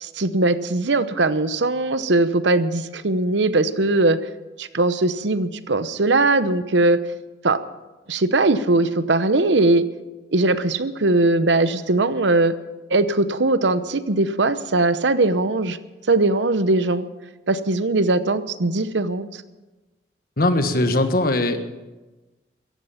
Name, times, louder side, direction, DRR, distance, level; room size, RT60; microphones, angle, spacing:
voice 1, 0.0-4.2 4.6-7.0 7.4-7.6 8.1-9.8 10.3-12.5 12.9-15.8 16.1-17.0 17.5-19.3, right 2 dB, 80° right, 13 dB, 0.9 m, -20 dB
voice 2, 20.4-21.6, left 2 dB, 55° left, 7 dB, 1.5 m, -20 dB
17.0 x 14.5 x 5.8 m, 1.1 s
head